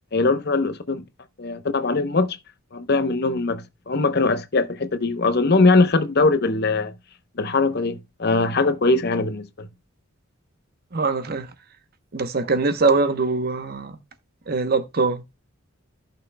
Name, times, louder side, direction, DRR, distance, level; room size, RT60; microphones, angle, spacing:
voice 1, 0.1-1.0 1.4-2.4 2.7-6.9 7.4-9.7, left 3 dB, 50° left, 0.8 m, -21 dB
voice 2, 10.9-11.5 12.1-14.0 14.5-15.2, right 3 dB, 45° right, 0.9 m, -22 dB
14.5 x 5.9 x 2.2 m
head